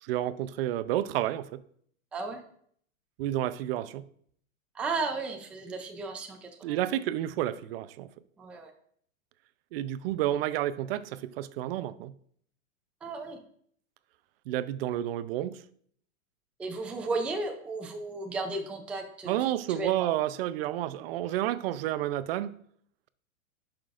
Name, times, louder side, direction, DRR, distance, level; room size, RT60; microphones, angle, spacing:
voice 1, 0.0-1.6 3.2-4.0 6.6-8.1 9.7-12.1 14.5-15.6 19.2-22.5, right 13 dB, 45° right, 0.6 m, -30 dB
voice 2, 2.1-2.4 4.7-6.8 8.4-8.7 13.0-13.4 16.6-20.1, right 3 dB, 5° right, 0.4 m, -34 dB
11.5 x 6.0 x 2.5 m
hypercardioid pair, 135°, 40 cm